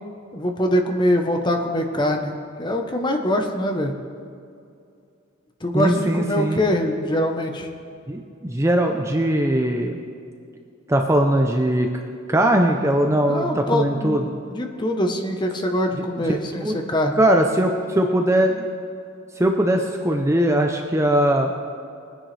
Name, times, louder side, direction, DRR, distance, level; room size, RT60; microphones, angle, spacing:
voice 1, 0.3-3.9 5.6-7.7 13.3-17.2, left 1 dB, 20° left, 4 dB, 0.9 m, -23 dB
voice 2, 5.7-6.6 8.1-10.0 10.9-11.9 12.3-14.3 16.0-16.1 16.5-16.8 17.1-18.7 19.4-21.5, right 1 dB, 15° right, 3 dB, 0.6 m, -20 dB
20.5 x 10.0 x 3.3 m, 2.4 s
head